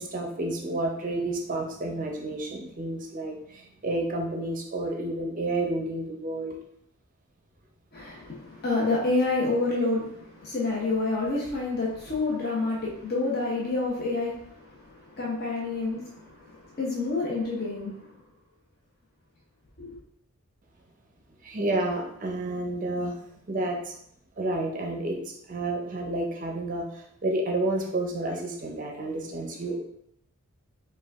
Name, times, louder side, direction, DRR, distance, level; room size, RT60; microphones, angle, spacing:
voice 1, 0.0-6.6 21.4-23.1 23.5-23.9 24.4-29.8, right 2 dB, 35° right, 1 dB, 0.5 m, -30 dB
voice 2, 7.9-18.1 19.8-20.0, left 3 dB, 45° left, -5 dB, 0.7 m, -28 dB
4.9 x 2.3 x 3.4 m, 0.73 s
head